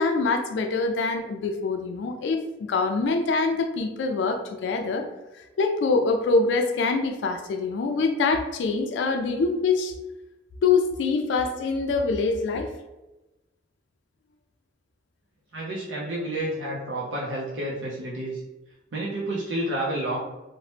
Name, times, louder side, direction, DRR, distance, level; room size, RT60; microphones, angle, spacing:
voice 1, 0.0-2.4 2.7-5.0 5.6-9.9 10.6-12.7, left 4 dB, 70° left, 5 dB, 0.3 m, -24 dB
voice 2, 15.5-18.4 18.9-20.2, right 1 dB, 85° right, -5 dB, 0.5 m, -30 dB
2.8 x 2.0 x 3.2 m, 1.0 s
head